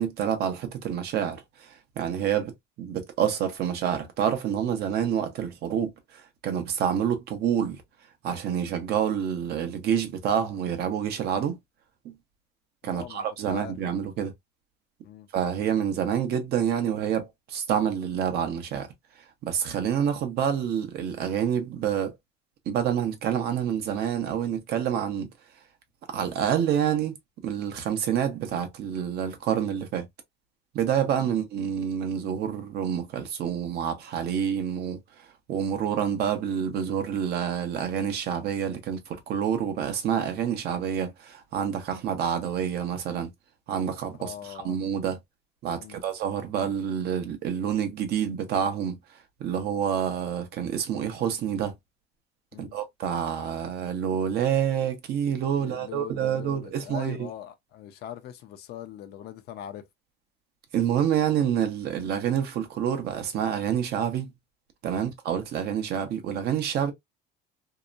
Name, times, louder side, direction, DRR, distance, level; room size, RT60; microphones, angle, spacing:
voice 1, 0.0-2.5 2.8-7.8 8.2-11.6 12.0-12.1 12.8-14.3 15.3-18.9 19.4-22.1 22.7-25.3 26.1-27.1 27.4-30.1 30.7-35.0 35.5-43.3 43.7-45.2 45.6-49.0 49.4-51.7 52.6-57.3 60.7-64.3 64.8-66.9, right 8 dB, 60° right, 0.8 m, -28 dB
voice 2, 12.8-13.7 15.0-15.3 31.0-31.2 44.1-44.8 45.8-46.0 52.5-52.8 55.6-59.9 64.9-65.1, left 11 dB, 60° left, 0.6 m, -41 dB
2.8 x 2.1 x 2.4 m
cardioid pair, 115°, 19 cm